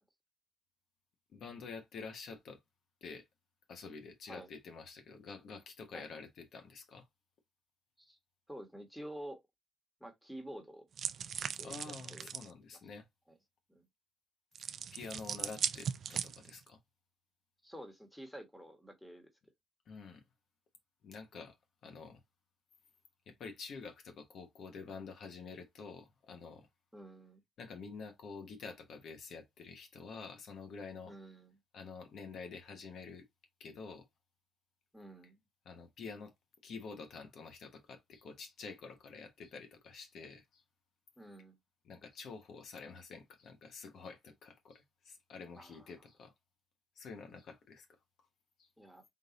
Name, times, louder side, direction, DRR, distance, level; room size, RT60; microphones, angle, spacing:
voice 1, 1.3-2.6 3.0-3.2 3.7-7.1 11.6-13.1 14.9-16.8 19.9-20.2 21.0-21.6 21.8-22.2 23.3-26.7 27.6-31.1 31.7-33.3 33.6-34.1 35.6-36.3 36.6-40.6 41.8-46.3 47.0-47.9 48.6-48.7, left 4 dB, 70° left, 1.0 m, -48 dB
voice 2, 8.5-9.4 10.0-10.9 11.6-12.3 12.7-12.8 13.7-13.8 17.6-19.3 26.9-27.4 31.0-31.6 34.9-35.4 41.2-41.6 45.5-45.9 48.8-49.0, right 1 dB, ahead, 1.4 m, -49 dB
sound 1, 11.0-12.5 14.6-16.7, right 7 dB, 60° right, 0.4 m, -38 dB
3.8 x 2.6 x 3.8 m
cardioid pair, 90°, 0 cm